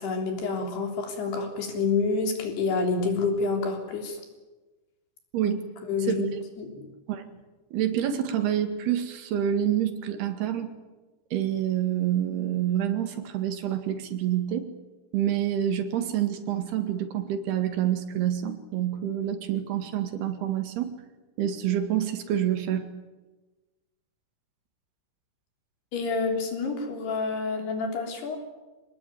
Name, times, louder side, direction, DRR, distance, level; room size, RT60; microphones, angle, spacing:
voice 1, 0.0-4.2 5.4-5.5 5.9-6.3 6.6-6.9 25.9-28.4, left 4 dB, 85° left, 3 dB, 5.5 m, -28 dB
voice 2, 5.3-5.6 6.1-6.4 7.1-7.3 7.7-10.7 11.3-14.7 15.1-20.9 21.4-22.9, right 10 dB, 85° right, 7 dB, 4.0 m, -27 dB
26.0 x 19.5 x 9.4 m, 1.2 s
omnidirectional pair, 4.5 m